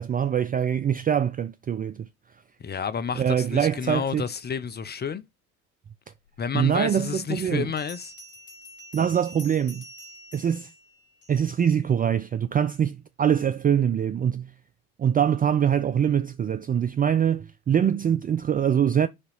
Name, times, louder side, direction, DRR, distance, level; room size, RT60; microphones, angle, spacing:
voice 1, 0.0-2.1 3.1-4.2 6.5-7.7 8.9-9.8 10.3-10.7 11.3-14.5 15.0-19.1, right 8 dB, 20° right, 0.4 m, -24 dB
voice 2, 2.6-5.2 6.4-8.1, left 6 dB, 25° left, 0.6 m, -30 dB
Bell, 7.8-11.7, left 1 dB, 55° left, 3.0 m, -47 dB
6.3 x 2.9 x 5.6 m
hypercardioid pair, 60°, 41 cm